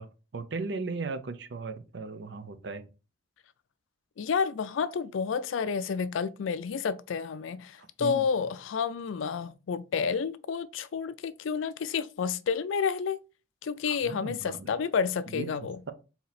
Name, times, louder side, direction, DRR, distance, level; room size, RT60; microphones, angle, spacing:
voice 1, 0.0-2.8 7.8-8.3 13.8-14.7 15.3-15.9, right 3 dB, 60° right, 0.5 m, -37 dB
voice 2, 4.2-13.2 13.6-15.8, left 6 dB, 80° left, 0.4 m, -30 dB
4.3 x 2.8 x 4.0 m
head